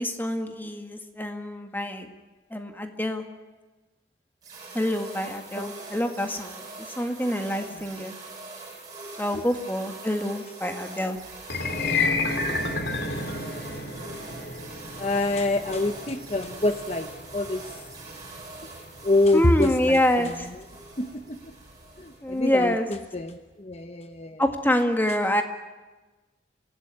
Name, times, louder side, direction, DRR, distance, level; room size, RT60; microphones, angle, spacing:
voice 1, 0.0-2.1 2.5-3.2 4.7-6.6 7.0-8.2 9.2-11.2 19.3-20.5 22.2-22.9 24.4-25.4, equal, 10° left, 5 dB, 1.9 m, -26 dB
sound 1, 4.4-22.4, right 3 dB, 20° right, 7.1 m, -43 dB
voice 2, 7.7-8.0 9.3-9.4 13.1-13.6 13.8-14.2 14.9-17.6 18.6-18.7 19.0-20.6 21.0-21.5 22.0-24.4 25.1-25.2, left 2 dB, 35° left, 7 dB, 0.9 m, -27 dB
sound 2, 11.4-21.7, left 3 dB, 65° left, 2.6 m, -32 dB
26.5 x 16.5 x 9.8 m, 1.2 s
head